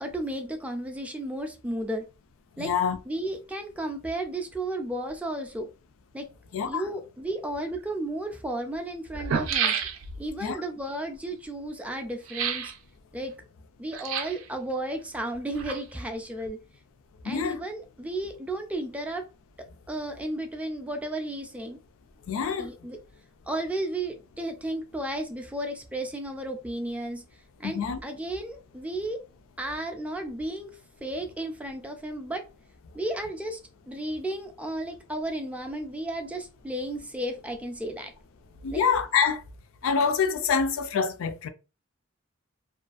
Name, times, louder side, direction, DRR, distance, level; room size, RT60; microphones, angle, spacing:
voice 1, 0.0-2.0 2.6-2.7 3.1-5.7 6.1-6.3 6.7-9.8 10.2-12.7 13.1-13.3 13.8-16.6 17.2-19.3 19.9-21.8 22.6-23.0 23.5-27.2 27.6-29.2 29.6-32.4 32.9-33.6 33.9-38.1 38.7-38.8, right 1 dB, 5° right, 0.3 m, -33 dB
voice 2, 2.6-3.0 6.5-6.8 10.4-10.6 17.3-17.6 22.3-22.7 27.6-28.0 38.6-39.4 39.8-41.5, left 6 dB, 85° left, 0.4 m, -26 dB
sound 1, 7.8-7.9 8.7-8.8 9.1-10.3 12.3-12.8 13.9-14.5 15.3-16.1 16.4-16.5, right 7 dB, 80° right, 0.4 m, -30 dB
2.4 x 2.3 x 2.4 m
head